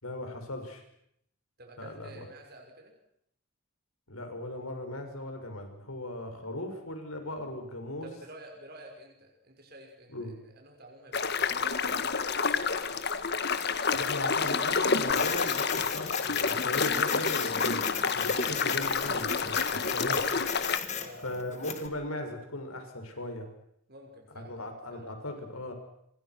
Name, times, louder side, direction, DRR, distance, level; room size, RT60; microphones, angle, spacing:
voice 1, 0.0-0.8 1.8-2.3 4.1-8.1 10.1-10.3 13.9-16.1 16.4-17.8 18.1-20.4 21.2-23.5 24.3-25.7, left 1 dB, 75° left, 5 dB, 6.8 m, -38 dB
voice 2, 1.6-2.9 8.0-12.2 21.0-21.2 23.9-24.6 24.9-25.1, right 1 dB, 45° right, 1 dB, 5.9 m, -50 dB
sound 1, 11.1-20.8, left 5 dB, 50° left, 1.5 m, -29 dB
Printer, 15.1-21.9, left 7 dB, 30° left, 2.4 m, -36 dB
30.0 x 26.5 x 6.2 m, 0.73 s
head